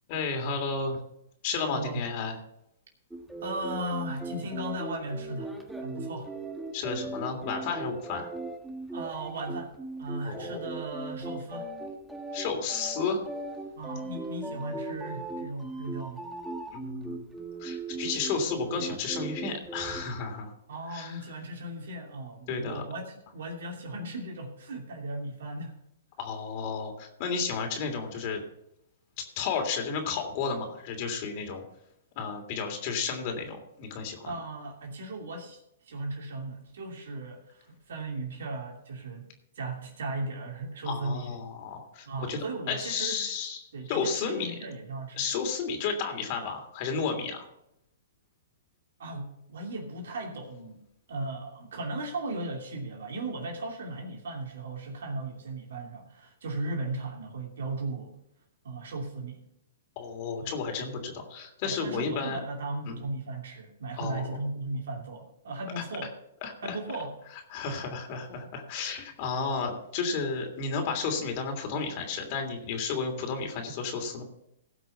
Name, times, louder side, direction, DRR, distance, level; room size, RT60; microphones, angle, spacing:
voice 1, 0.1-1.0 1.4-2.4 6.7-8.3 10.2-10.7 12.3-13.2 16.7-17.3 17.6-20.5 20.9-21.2 22.5-22.8 26.2-28.4 29.4-31.6 32.2-34.3 40.8-44.5 45.2-47.4 60.0-62.4 62.9-63.0 64.0-64.3 65.8-65.9 66.4-66.8 67.5-74.2, left 5 dB, 45° left, 4 dB, 3.0 m, -32 dB
voice 2, 1.7-2.1 3.4-5.5 5.8-6.3 8.9-9.7 10.0-11.7 13.8-16.2 20.7-23.1 23.3-25.7 34.3-35.6 35.9-39.3 39.6-41.3 42.1-43.2 43.7-45.2 49.0-50.8 51.1-58.2 58.6-59.4 60.4-60.5 61.6-66.1 66.6-67.1, right 2 dB, 75° right, 0 dB, 2.8 m, -36 dB
sound 1, 3.1-20.0, right 3 dB, 5° right, 1.6 m, -38 dB
16.5 x 6.0 x 5.7 m, 0.78 s
hypercardioid pair, 125°, 0 cm